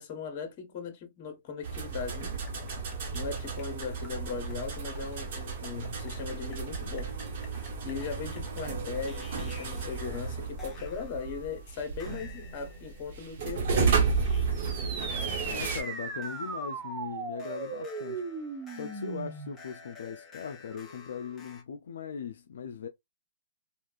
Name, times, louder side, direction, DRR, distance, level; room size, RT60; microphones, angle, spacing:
voice 1, 0.0-2.4 3.1-7.2 7.5-14.0, left 5 dB, 40° left, 1.2 m, -38 dB
sound 1, 1.6-15.8, right 5 dB, 55° right, 1.2 m, -33 dB
sound 2, 1.8-8.7 9.1-14.5 14.8-14.9 15.8-21.6, left 3 dB, 15° left, 1.0 m, -52 dB
sound 3, 14.5-19.6, right 4 dB, 20° right, 0.7 m, -37 dB
voice 2, 15.4-18.3 18.7-22.9, left 7 dB, 70° left, 0.4 m, -39 dB
3.3 x 2.4 x 2.4 m
hypercardioid pair, 130°, 0 cm